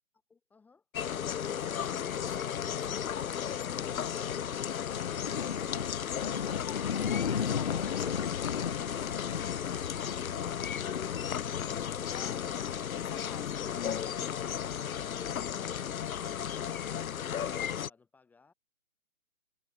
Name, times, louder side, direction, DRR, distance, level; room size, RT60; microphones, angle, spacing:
voice 1, 0.3-0.9 17.9-18.5, left 4 dB, 5° left, 4.2 m, -65 dB
sound 1, 0.9-17.9, left 9 dB, 70° left, 0.9 m, -35 dB
voice 2, 1.6-3.3 4.4-5.0 6.2-8.1 12.0-13.5 16.6-17.1, left 13 dB, 20° left, 2.0 m, -50 dB
sound 2, 3.8-14.2, left 7 dB, 45° left, 0.6 m, -37 dB
hypercardioid pair, 175°, 44 cm